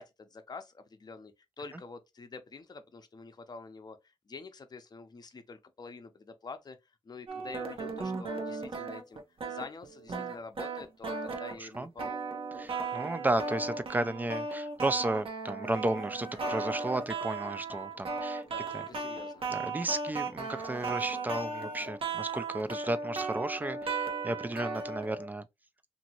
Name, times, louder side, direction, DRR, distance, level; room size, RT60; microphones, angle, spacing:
voice 1, 0.0-9.2 9.5-12.2 18.4-19.5, left 4 dB, 40° left, 0.6 m, -47 dB
sound 1, 7.3-25.3, right 4 dB, 60° right, 0.8 m, -36 dB
voice 2, 12.6-18.4 18.7-18.8 19.5-25.4, right 2 dB, 15° right, 0.4 m, -33 dB
Chicken rooster, 15.6-17.5 20.1-21.9, right 1 dB, 85° right, 1.3 m, -48 dB
2.9 x 2.6 x 2.8 m
cardioid pair, 70°, 10 cm